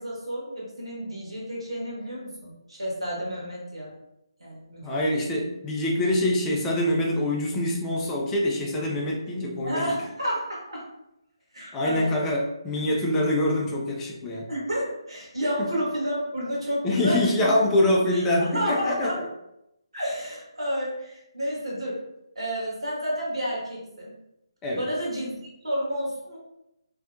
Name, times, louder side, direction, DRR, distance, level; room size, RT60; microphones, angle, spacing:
voice 1, 0.0-3.9 4.4-5.1 9.6-10.8 11.5-12.3 14.5-17.5 18.1-19.2 19.9-22.0 22.3-24.1 24.8-25.4 25.6-26.4, equal, 80° right, -4 dB, 1.0 m, -31 dB
voice 2, 4.8-9.9 11.7-14.5 15.6-15.8 16.8-19.3 24.6-24.9, left 1 dB, 10° left, -1 dB, 0.3 m, -25 dB
2.6 x 2.0 x 2.4 m, 0.87 s
figure-of-eight pair, 145°, 3 cm